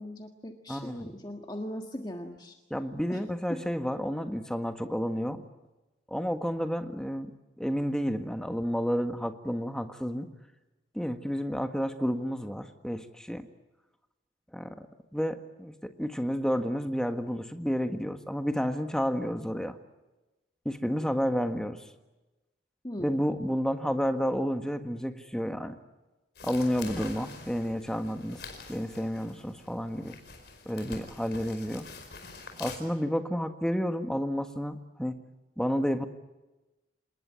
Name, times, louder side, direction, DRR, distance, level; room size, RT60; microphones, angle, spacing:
voice 1, 0.0-2.6 3.1-3.2 3.5-3.6 22.8-23.2, left 1 dB, 20° left, 3 dB, 1.6 m, -39 dB
voice 2, 0.7-1.1 2.7-5.4 6.1-7.3 7.6-10.3 10.9-13.5 14.5-14.9 15.1-19.8 20.6-21.9 23.0-25.8 26.4-28.4 28.7-30.2 30.6-31.9 32.6-35.2 35.6-36.1, equal, 5° left, 6 dB, 1.5 m, -31 dB
sound 1, 26.3-32.8, left 4 dB, 55° left, 4.9 m, -46 dB
27.5 x 20.5 x 9.4 m, 1.1 s
head